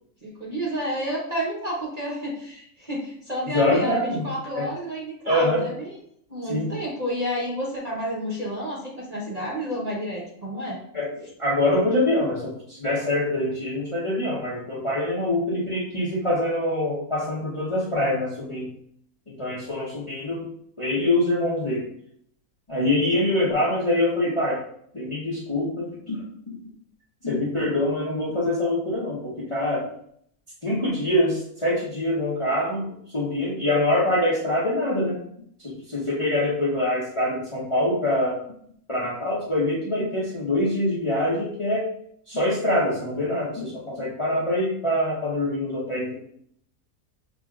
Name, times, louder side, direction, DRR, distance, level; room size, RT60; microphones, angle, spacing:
voice 1, 0.2-5.9 6.3-10.8, equal, 30° right, -5 dB, 0.9 m, -30 dB
voice 2, 3.5-4.7 5.3-5.6 6.5-6.7 10.9-18.7 19.3-20.5 20.8-21.9 22.7-24.6 24.9-26.2 27.2-29.8 30.6-35.2 35.6-38.4 38.9-41.9 42.3-46.2, left 1 dB, 25° left, -7 dB, 0.7 m, -24 dB
6.0 x 2.8 x 2.4 m, 0.68 s
omnidirectional pair, 1.6 m